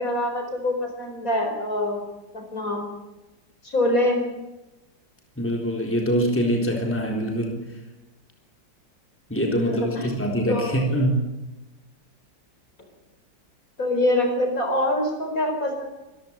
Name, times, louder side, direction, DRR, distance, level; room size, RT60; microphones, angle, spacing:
voice 1, 0.0-2.0 2.3-2.9 3.6-4.2 9.7-10.1 10.5-10.8 13.8-15.9, left 1 dB, 45° left, 4 dB, 4.8 m, -24 dB
voice 2, 5.4-7.6 9.3-11.2, equal, 5° left, 1 dB, 3.9 m, -24 dB
25.0 x 14.5 x 8.9 m, 1.0 s
omnidirectional pair, 2.0 m